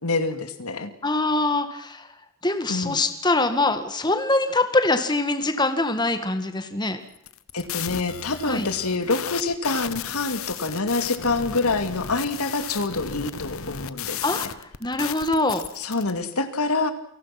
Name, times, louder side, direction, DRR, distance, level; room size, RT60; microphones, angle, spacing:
voice 1, 0.0-0.9 2.7-3.0 7.5-14.5 15.8-16.9, left 3 dB, 90° left, 9 dB, 2.5 m, -26 dB
voice 2, 1.0-2.1 2.4-7.0 8.4-8.7 14.2-15.6, left 2 dB, 20° left, 8 dB, 1.8 m, -23 dB
sound 1, 7.1-16.1, left 8 dB, 75° left, 1.1 m, -35 dB
28.5 x 18.5 x 6.0 m, 0.74 s
head